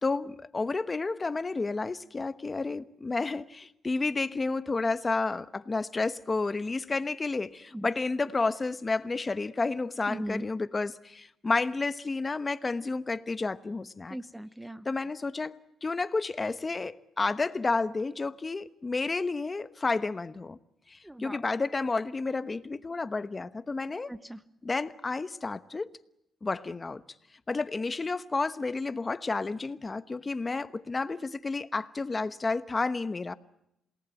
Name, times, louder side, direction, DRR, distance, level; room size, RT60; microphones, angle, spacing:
voice 1, 0.0-14.2 14.8-20.6 20.9-24.1 24.6-25.9 26.4-27.0 27.5-33.3, left 3 dB, 25° left, 13 dB, 1.1 m, -31 dB
voice 2, 10.1-10.5 14.1-14.8 21.0-21.4 24.1-24.4, right 1 dB, 10° right, 14 dB, 1.0 m, -38 dB
28.0 x 18.5 x 9.1 m, 0.82 s
cardioid pair, 95°, 0 cm